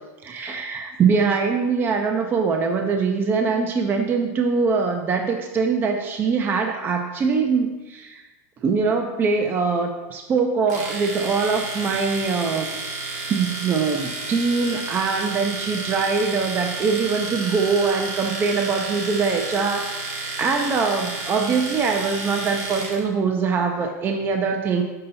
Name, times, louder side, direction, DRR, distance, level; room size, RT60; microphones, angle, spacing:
voice 1, 0.2-8.2 8.6-12.7 13.3-24.8, right 5 dB, 25° right, 4 dB, 0.5 m, -23 dB
Domestic sounds home sounds, 10.7-23.0, right 3 dB, 90° right, 1.6 m, -31 dB
6.6 x 5.6 x 4.0 m, 1.1 s
supercardioid pair, 140°, 9 cm